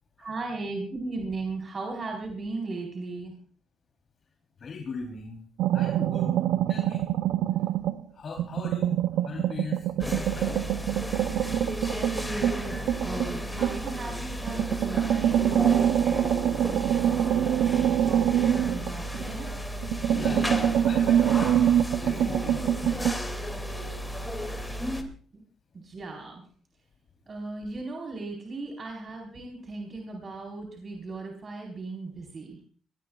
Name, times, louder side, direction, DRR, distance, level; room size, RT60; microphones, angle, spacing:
voice 1, 0.2-3.3 11.9-20.0 25.8-26.4 27.3-32.6, right 3 dB, 40° right, 0 dB, 4.4 m, -37 dB
voice 2, 4.6-5.4 5.7-7.0 8.1-10.6 20.1-21.6 22.0-23.2, left 4 dB, 50° left, 0 dB, 3.5 m, -39 dB
sound 1, 5.6-8.0 8.4-14.0 14.5-19.5 19.8-23.2, right 10 dB, 85° right, 0.7 m, -25 dB
sound 2, 10.0-25.0, equal, 10° left, 2.5 m, -34 dB
24.0 x 19.5 x 2.4 m, 0.43 s
cardioid pair, 90°, 0 cm